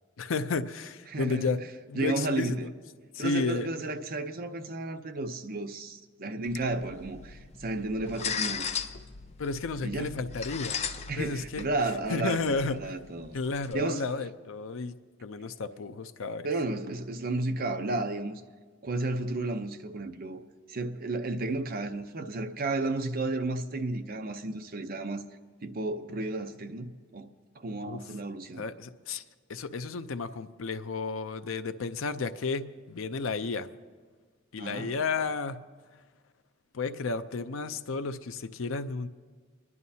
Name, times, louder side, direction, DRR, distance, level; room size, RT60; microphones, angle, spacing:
voice 1, 0.2-1.6 1.9-2.7 3.1-3.7 9.4-10.8 11.2-11.7 12.1-12.9 13.3-14.9 15.2-16.5 27.9-28.0 28.6-29.2 29.5-33.7 34.5-35.6 36.7-39.1, left 4 dB, 80° left, 0.5 m, -32 dB
voice 2, 1.1-1.5 1.9-2.7 3.2-8.7 9.8-10.1 11.1-13.4 13.7-14.0 16.4-18.4 18.8-20.4 20.7-25.2 25.6-27.3 27.6-28.6 34.6-34.9, right 2 dB, 50° right, 0.7 m, -32 dB
sound 1, 6.5-13.7, left 6 dB, 35° left, 0.6 m, -38 dB
27.5 x 11.0 x 2.8 m
head